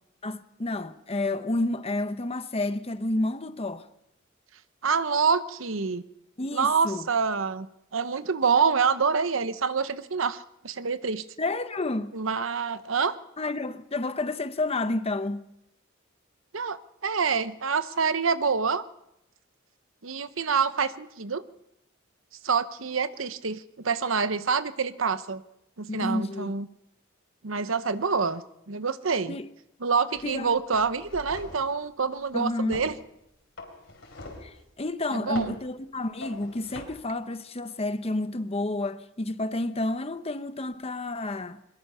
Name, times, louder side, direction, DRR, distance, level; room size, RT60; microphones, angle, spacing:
voice 1, 0.2-3.9 6.4-7.1 11.4-12.1 13.4-15.5 25.9-26.5 29.3-29.5 30.2-30.5 32.3-32.9 34.4-41.6, left 2 dB, 30° left, 0.9 m, -30 dB
voice 2, 4.8-6.0 6.5-7.7 7.9-11.2 12.1-13.1 16.5-18.8 20.0-21.4 22.4-25.4 25.8-26.7 27.4-29.4 29.8-32.9 35.1-35.5, right 5 dB, 75° right, 0.9 m, -26 dB
sound 1, 30.2-30.4 30.7-31.7 32.7-33.0 33.6-34.5 35.3-35.6 36.2-36.9, left 2 dB, 70° left, 4.5 m, -42 dB
22.5 x 21.5 x 5.6 m
head